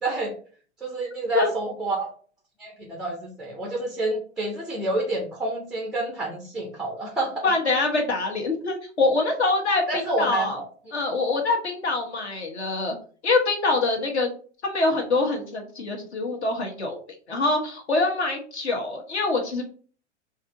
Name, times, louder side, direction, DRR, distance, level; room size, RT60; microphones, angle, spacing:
voice 1, 0.0-0.3 0.8-2.1 2.6-7.5 9.9-10.7, right 2 dB, ahead, 2 dB, 0.3 m, -28 dB
voice 2, 7.4-10.6 10.9-12.9 13.2-14.3 14.6-17.0 17.3-19.6, left 3 dB, 70° left, 2 dB, 1.2 m, -24 dB
4.6 x 2.8 x 3.7 m, 0.42 s
figure-of-eight pair, 95°, 35 cm